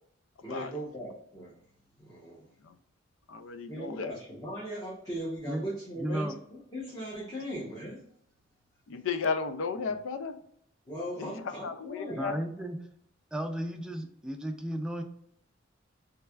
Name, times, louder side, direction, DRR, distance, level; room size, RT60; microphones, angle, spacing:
voice 1, 0.4-1.6 2.0-2.5 3.7-8.0 10.9-12.4, equal, 20° left, 0.9 m, -39 dB
voice 2, 3.3-4.2 8.9-10.4 11.2-12.4, left 5 dB, 85° left, 0.4 m, -34 dB
voice 3, 6.0-6.3 9.8-10.0 12.1-12.8 13.3-15.0, equal, 5° right, 0.4 m, -34 dB
3.3 x 3.3 x 2.3 m
head